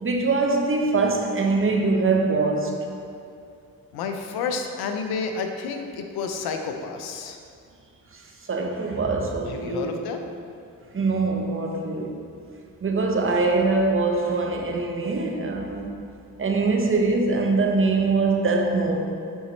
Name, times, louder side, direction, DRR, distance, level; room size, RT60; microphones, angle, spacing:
voice 1, 0.0-2.9 8.1-10.0 10.9-12.3 12.8-15.9 16.4-19.1, right 3 dB, 35° right, 2 dB, 0.9 m, -23 dB
voice 2, 3.9-7.4 9.5-10.2, left 5 dB, 85° left, 5 dB, 0.6 m, -30 dB
7.9 x 4.1 x 3.1 m, 2.4 s
supercardioid pair, 60°, 37 cm